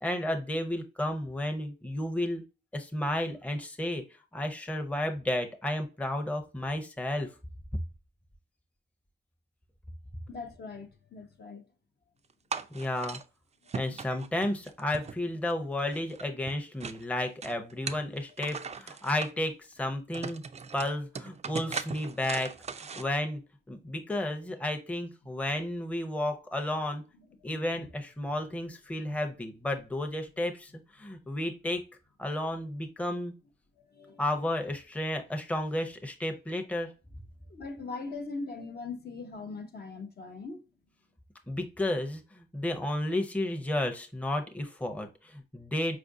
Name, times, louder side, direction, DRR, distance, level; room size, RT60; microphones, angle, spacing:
voice 1, 0.0-2.4 2.7-4.0 4.3-7.3 12.7-13.2 13.7-20.4 20.7-22.5 23.0-23.4 23.7-27.0 27.4-31.8 32.2-33.3 34.2-36.9 41.5-46.0, left 1 dB, 5° left, 0.6 m, -32 dB
voice 2, 10.3-11.6 18.6-18.7 23.0-23.1 23.8-23.9 27.1-27.9 33.8-34.4 37.5-40.6, left 3 dB, 50° left, 0.7 m, -41 dB
sound 1, 12.5-13.2 13.7-15.5 15.8-17.0 17.4-19.3 19.8-19.9 20.1-23.0, right 5 dB, 30° right, 0.4 m, -39 dB
4.4 x 2.5 x 2.6 m
cardioid pair, 75°, 21 cm